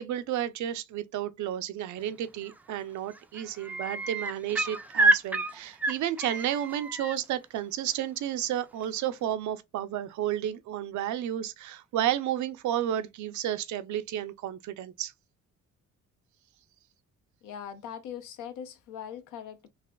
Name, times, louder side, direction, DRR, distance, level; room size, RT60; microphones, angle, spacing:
voice 1, 0.0-15.1, right 11 dB, 75° right, 0.5 m, -32 dB
sound 1, 2.5-2.8 3.1-7.2 8.8-8.9, right 2 dB, 5° right, 0.3 m, -28 dB
voice 2, 17.4-19.7, left 8 dB, 85° left, 0.7 m, -41 dB
4.0 x 2.4 x 2.3 m
cardioid pair, 90°, 30 cm